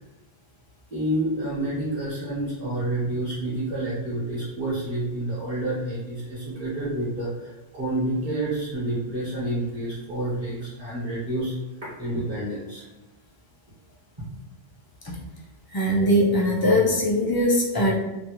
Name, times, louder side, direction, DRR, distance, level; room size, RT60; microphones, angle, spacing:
voice 1, 0.9-11.5 12.0-12.8 14.2-14.3, right 1 dB, 40° right, -10 dB, 1.1 m, -29 dB
voice 2, 15.7-17.9, left 1 dB, 30° left, -4 dB, 0.5 m, -21 dB
2.8 x 2.1 x 2.9 m, 1.1 s
omnidirectional pair, 1.0 m